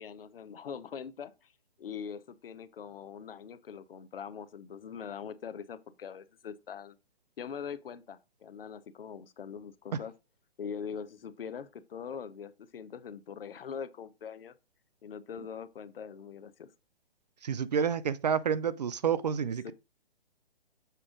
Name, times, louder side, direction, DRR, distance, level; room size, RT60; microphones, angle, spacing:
voice 1, 0.0-1.5 1.8-7.0 7.4-10.1 10.6-14.5 15.0-16.7 19.6-19.7, left 7 dB, 60° left, 0.7 m, -42 dB
voice 2, 17.4-19.7, right 7 dB, 45° right, 0.4 m, -29 dB
6.7 x 4.9 x 3.7 m
figure-of-eight pair, 140°, 32 cm